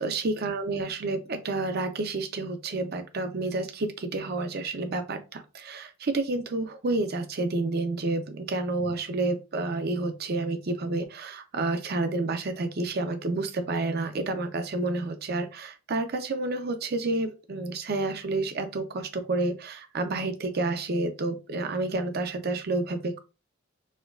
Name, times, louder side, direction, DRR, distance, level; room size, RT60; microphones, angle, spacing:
voice 1, 0.0-23.2, right 2 dB, 50° right, 8 dB, 0.5 m, -29 dB
4.3 x 2.3 x 2.3 m, 0.28 s
head